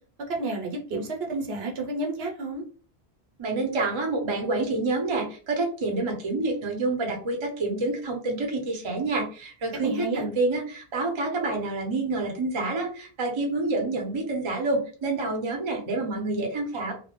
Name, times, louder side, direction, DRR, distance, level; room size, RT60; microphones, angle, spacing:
voice 1, 0.3-2.6 9.8-10.2, right 2 dB, 70° right, 1 dB, 0.8 m, -30 dB
voice 2, 3.4-16.9, right 2 dB, 35° right, 1 dB, 0.5 m, -28 dB
2.3 x 2.0 x 2.8 m, 0.40 s
omnidirectional pair, 1.1 m